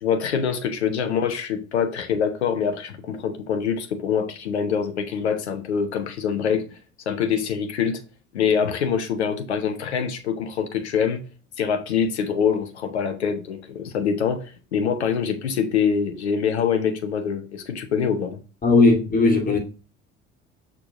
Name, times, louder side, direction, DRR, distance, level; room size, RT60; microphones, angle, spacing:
voice 1, 0.0-6.8 7.1-8.0 8.3-11.2 11.6-18.4, left 7 dB, 80° left, 0.9 m, -24 dB
voice 2, 18.6-19.6, left 3 dB, 25° left, 2.6 m, -17 dB
6.6 x 3.6 x 4.9 m
figure-of-eight pair, 55°, 33 cm